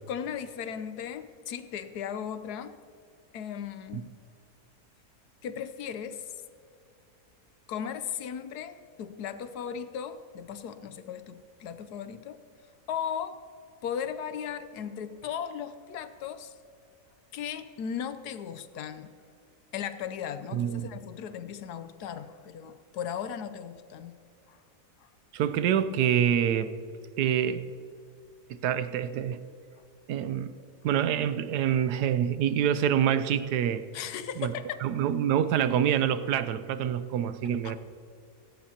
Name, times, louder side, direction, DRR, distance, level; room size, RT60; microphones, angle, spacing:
voice 1, 0.1-2.8 3.3-4.1 5.4-6.3 7.7-12.4 12.9-13.4 13.8-16.5 17.3-19.1 19.7-24.2 24.5-24.6 25.0-25.1 33.9-34.8 37.6-37.8, left 8 dB, 75° left, 11 dB, 1.2 m, -37 dB
voice 2, 20.5-20.9 25.3-26.7 27.2-27.6 28.5-29.4 30.1-30.5 30.8-33.8 34.4-34.5 34.8-37.8, right 9 dB, 80° right, 13 dB, 1.2 m, -26 dB
17.0 x 16.5 x 2.9 m, 2.4 s
omnidirectional pair, 1.7 m